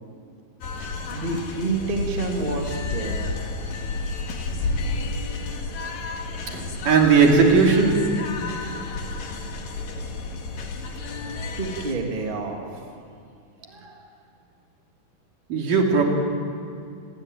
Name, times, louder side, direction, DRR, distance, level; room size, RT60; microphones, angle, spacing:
sound 1, 0.6-11.9, left 3 dB, 65° left, 3.6 m, -31 dB
voice 1, 1.1-3.6 11.6-12.6 13.7-14.0 15.5-15.6, right 3 dB, 15° right, 1 dB, 2.2 m, -29 dB
voice 2, 6.5-8.3 15.5-16.0, right 4 dB, 60° right, 1 dB, 4.3 m, -18 dB
29.5 x 21.0 x 9.2 m, 2.4 s
omnidirectional pair, 4.5 m